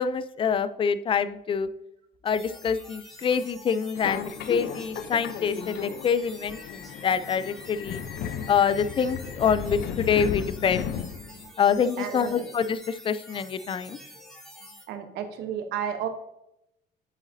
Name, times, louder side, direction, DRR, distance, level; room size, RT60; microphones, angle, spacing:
voice 1, 0.0-1.7 2.2-8.0 8.5-10.9 11.6-14.0, left 7 dB, 30° left, 13 dB, 0.4 m, -26 dB
sound 1, 2.3-14.8, equal, ahead, 2.3 m, -47 dB
Subway metro underground, 4.0-11.5, left 8 dB, 75° left, 0.6 m, -35 dB
voice 2, 12.0-12.5 14.9-16.1, right 9 dB, 85° right, 7 dB, 1.0 m, -32 dB
7.9 x 7.2 x 2.7 m, 0.82 s
cardioid pair, 110°, 17 cm